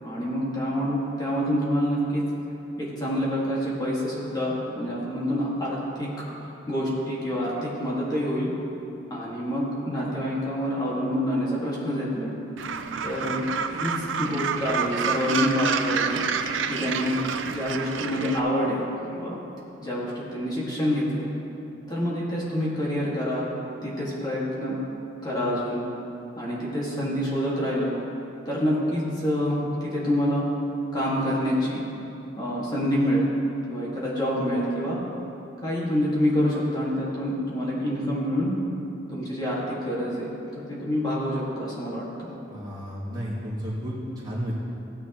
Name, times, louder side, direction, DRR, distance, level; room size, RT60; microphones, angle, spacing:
voice 1, 0.0-2.2 3.0-6.1 6.4-8.5 9.1-12.3 13.0-13.4 13.7-16.2 16.7-17.2 17.5-19.4 19.8-21.3 21.9-23.5 23.8-24.8 25.2-25.8 26.4-27.9 28.5-30.5 30.9-31.8 32.4-33.3 33.7-35.0 35.6-38.5 39.1-40.3 40.6-42.3, equal, 20° left, -6 dB, 1.9 m, -27 dB
Gull seagull, 12.6-18.4, right 6 dB, 75° right, 0.5 m, -28 dB
voice 2, 42.5-44.5, equal, 20° right, -9 dB, 2.5 m, -32 dB
15.5 x 9.6 x 3.0 m, 2.9 s
head